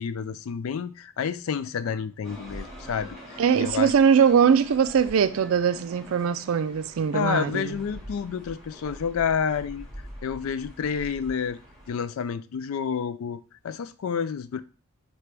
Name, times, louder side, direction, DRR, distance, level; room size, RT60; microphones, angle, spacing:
voice 1, 0.0-3.9 7.1-9.9 10.2-11.6 11.9-14.6, left 7 dB, 85° left, 0.4 m, -29 dB
sound 1, 2.2-11.9, equal, ahead, 2.1 m, -44 dB
voice 2, 3.4-7.7, right 7 dB, 80° right, 0.3 m, -21 dB
4.5 x 2.9 x 3.3 m
head